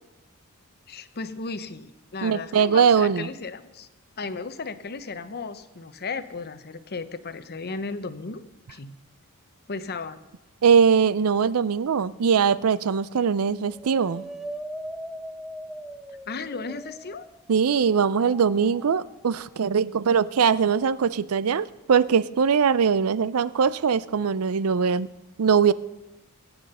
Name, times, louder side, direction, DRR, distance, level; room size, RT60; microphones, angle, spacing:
voice 1, 0.9-3.9 4.2-8.4 8.7-9.0 9.7-10.2 16.3-17.3, left 4 dB, 45° left, 12 dB, 0.8 m, -35 dB
voice 2, 2.2-3.3 10.6-14.2 17.5-25.1 25.4-25.7, right 6 dB, 80° right, 18 dB, 0.5 m, -21 dB
sound 1, 13.6-17.5 18.1-19.4 20.7-20.9, right 1 dB, ahead, 0.6 m, -40 dB
23.0 x 8.6 x 5.5 m, 1.1 s
head